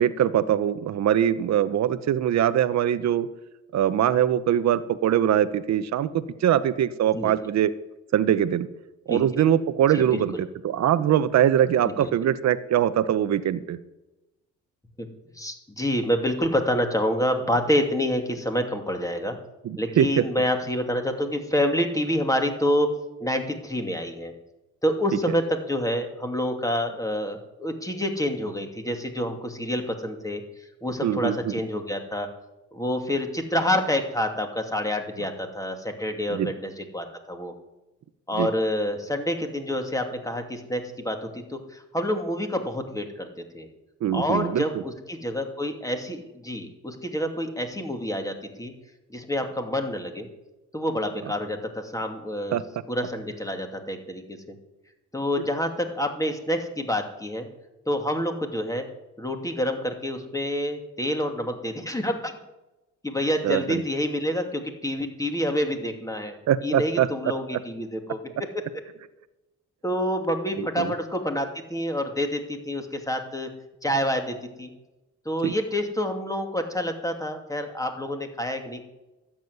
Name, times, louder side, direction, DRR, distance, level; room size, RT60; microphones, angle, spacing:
voice 1, 0.0-3.3 3.7-7.7 8.1-8.7 9.1-13.8 19.6-20.2 31.0-31.5 36.3-36.5 38.4-38.5 44.0-44.8 52.5-52.6 63.4-63.8 66.5-67.1 67.5-67.6 70.6-70.9 75.4-75.5, right 10 dB, 60° right, 13 dB, 0.9 m, -22 dB
voice 2, 9.1-9.4 9.9-10.2 12.0-12.1 15.0-15.1 15.3-19.4 19.8-22.9 23.2-24.3 24.8-30.4 30.8-32.3 32.7-37.5 38.3-43.3 43.5-43.7 44.1-48.7 49.1-50.3 50.7-52.6 52.9-54.2 54.5-54.6 55.1-57.5 57.9-58.8 59.2-62.3 63.0-66.3 66.6-68.2 69.8-73.5 73.8-74.7 75.2-78.8, equal, 10° left, 4 dB, 2.6 m, -27 dB
13.0 x 7.4 x 9.5 m, 1.0 s
cardioid pair, 90°, 30 cm